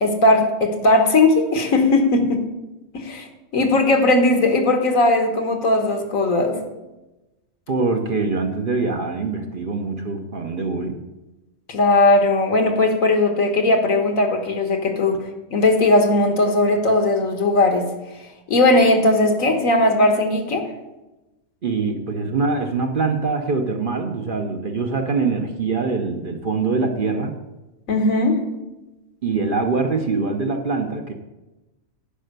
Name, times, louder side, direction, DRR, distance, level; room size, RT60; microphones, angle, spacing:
voice 1, 0.0-2.4 2.9-3.3 3.5-6.6 11.7-15.2 15.5-17.9 18.5-20.7 27.9-28.4, left 2 dB, 75° left, 4 dB, 1.7 m, -18 dB
voice 2, 7.7-11.0 21.6-27.3 29.2-31.1, right 4 dB, 45° right, 4 dB, 0.9 m, -23 dB
10.0 x 5.5 x 6.6 m, 1.0 s
omnidirectional pair, 1.4 m